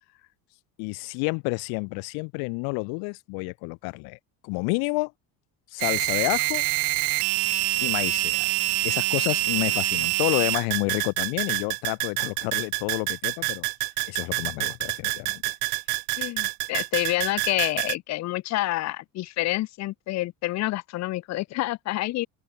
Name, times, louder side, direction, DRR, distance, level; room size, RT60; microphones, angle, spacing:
voice 1, 0.8-4.2 4.4-5.1 5.7-6.6 7.8-8.5 8.8-13.7 14.1-15.5, left 34 dB, 80° left, 3.2 m, -29 dB
sound 1, 5.8-17.9, right 40 dB or more, 85° right, 1.0 m, -26 dB
voice 2, 16.2-22.3, left 17 dB, 45° left, 1.2 m, -28 dB
open air
cardioid pair, 165°, 37 cm